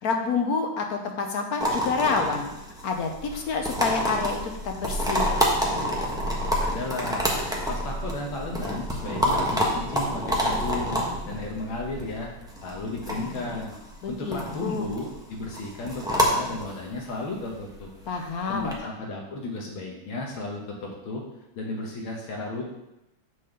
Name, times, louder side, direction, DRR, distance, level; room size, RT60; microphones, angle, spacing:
voice 1, 0.0-2.4 2.8-5.3 14.0-14.9 18.1-18.7, left 4 dB, 60° left, 3 dB, 1.1 m, -28 dB
sound 1, 1.6-18.7, equal, 5° right, 0.9 m, -28 dB
voice 2, 6.6-7.3 7.7-11.0 11.3-12.3 12.6-13.8 14.1-17.9 18.5-21.2 21.6-22.7, left 2 dB, 90° left, -1 dB, 2.0 m, -34 dB
7.5 x 4.2 x 6.5 m, 0.91 s
omnidirectional pair, 2.2 m